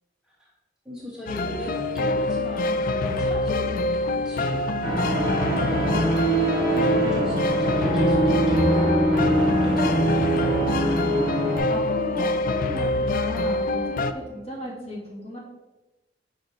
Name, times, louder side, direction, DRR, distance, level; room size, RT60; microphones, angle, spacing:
voice 1, 0.9-5.1 5.4-11.0, equal, 5° right, -4 dB, 0.7 m, -37 dB
sound 1, 1.3-14.1, left 2 dB, 50° left, 0.3 m, -26 dB
sound 2, 4.8-11.6, right 1 dB, 30° right, 1.8 m, -23 dB
voice 2, 11.7-15.4, left 1 dB, 35° left, -5 dB, 1.9 m, -35 dB
5.2 x 5.1 x 3.9 m, 1.1 s
head